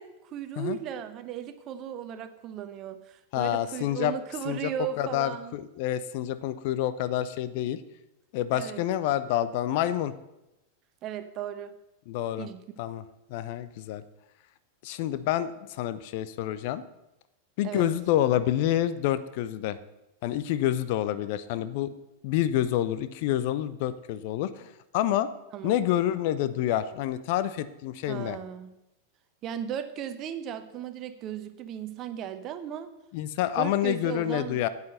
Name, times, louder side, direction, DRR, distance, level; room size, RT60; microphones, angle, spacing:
voice 1, 0.0-5.6 8.5-8.8 11.0-11.7 12.4-12.6 17.6-17.9 25.5-25.8 28.1-28.7 29.4-32.9 33.6-34.6, right 9 dB, 35° right, 11 dB, 0.9 m, -36 dB
voice 2, 3.3-4.1 4.5-4.7 5.0-7.8 8.3-10.1 12.1-12.5 12.8-13.0 13.3-14.0 14.8-16.8 17.6-19.8 20.2-21.9 22.2-25.3 25.6-28.4 33.1-34.7, left 12 dB, 50° left, 14 dB, 0.6 m, -28 dB
9.3 x 8.2 x 6.6 m, 0.93 s
figure-of-eight pair, 90°, 0 cm